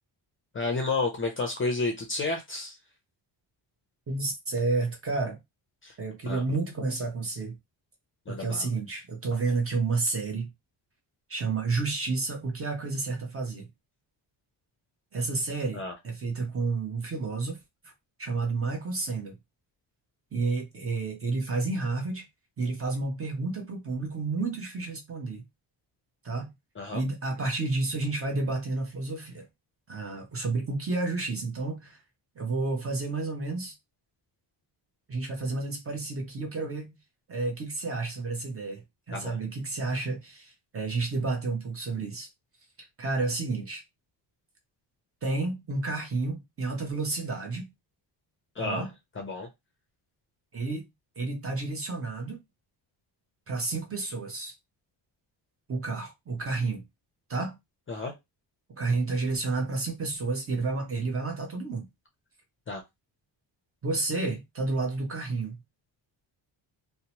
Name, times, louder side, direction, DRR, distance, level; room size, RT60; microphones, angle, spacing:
voice 1, 0.5-2.8 5.8-5.9 6.3-6.4 8.3-8.7 15.7-15.9 26.8-27.0 39.1-39.4 48.6-48.9 49.2-49.5 57.9-58.1 62.7-62.8, left 3 dB, 30° left, 0.5 m, -31 dB
voice 2, 4.1-5.4 6.0-7.6 8.3-10.5 11.3-13.7 15.1-17.6 18.2-19.4 20.3-22.2 22.6-25.4 26.2-26.5 26.9-29.5 29.9-32.0 32.4-33.7 35.1-37.0 37.3-42.3 43.0-43.8 45.2-47.7 48.6-48.9 50.5-50.8 51.2-52.4 53.5-54.5 55.7-56.8 57.3-57.6 58.8-61.9 63.8-65.6, right 3 dB, 30° right, 0.7 m, -30 dB
2.8 x 2.1 x 2.8 m
wide cardioid pair, 180°, 46 cm